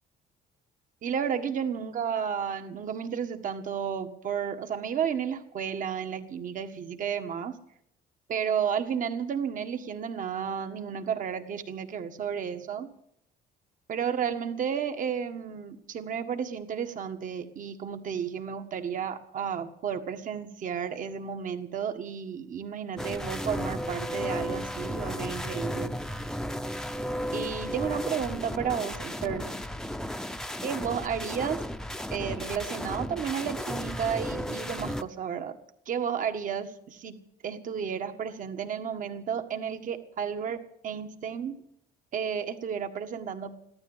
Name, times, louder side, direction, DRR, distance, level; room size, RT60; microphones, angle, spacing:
voice 1, 1.0-7.6 8.3-12.9 13.9-25.9 27.3-29.5 30.6-31.6 32.1-35.6 35.9-37.2 37.4-41.6 42.1-43.6, right 7 dB, 50° right, 7 dB, 1.7 m, -32 dB
sound 1, 23.0-35.0, equal, 5° left, 0.8 m, -34 dB
15.0 x 12.5 x 7.4 m, 0.74 s
cardioid pair, 110°, 17 cm